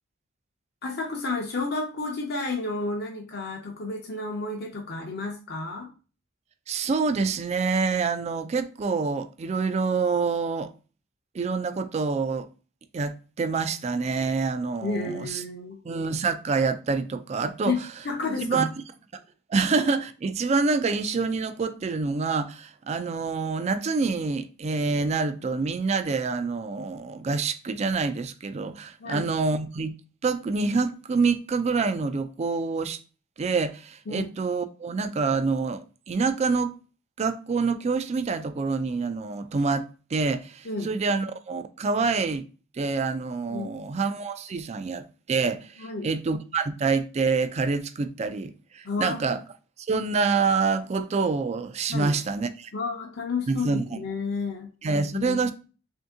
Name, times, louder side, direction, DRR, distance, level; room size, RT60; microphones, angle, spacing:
voice 1, 0.8-5.9 14.8-15.8 17.6-18.7 29.0-29.3 34.1-34.3 40.6-40.9 43.5-43.7 45.8-46.1 48.8-49.2 51.9-52.1 52.7-54.7 55.1-55.5, left 3 dB, 50° left, 0.7 m, -31 dB
voice 2, 6.7-10.7 11.3-12.5 12.9-15.4 15.8-17.7 18.4-18.6 19.5-29.9 30.2-33.0 33.4-36.8 37.2-42.4 42.7-49.4 49.9-52.7 53.5-54.0 54.8-55.5, right 4 dB, 30° right, 0.3 m, -26 dB
3.5 x 2.7 x 3.5 m
head